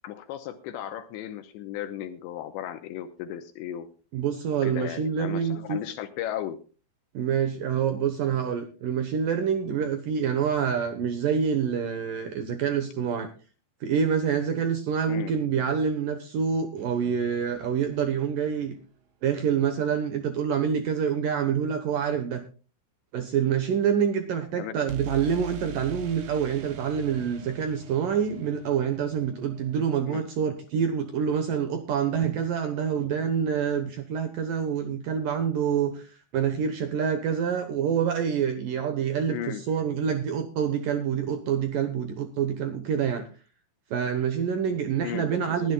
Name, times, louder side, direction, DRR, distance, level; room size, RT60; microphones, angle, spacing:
voice 1, 0.0-3.9 4.6-6.6 15.1-15.3 24.6-24.9 30.1-30.2 39.3-39.6 45.0-45.7, left 11 dB, 80° left, 8 dB, 2.9 m, -35 dB
voice 2, 4.1-5.8 7.1-13.3 13.8-18.8 19.2-22.4 23.1-43.3 43.9-45.7, right 7 dB, 80° right, 8 dB, 1.9 m, -27 dB
sound 1, 16.8-18.8 24.9-30.7, right 4 dB, 65° right, 2.5 m, -43 dB
21.0 x 12.5 x 2.3 m, 0.36 s
omnidirectional pair, 5.5 m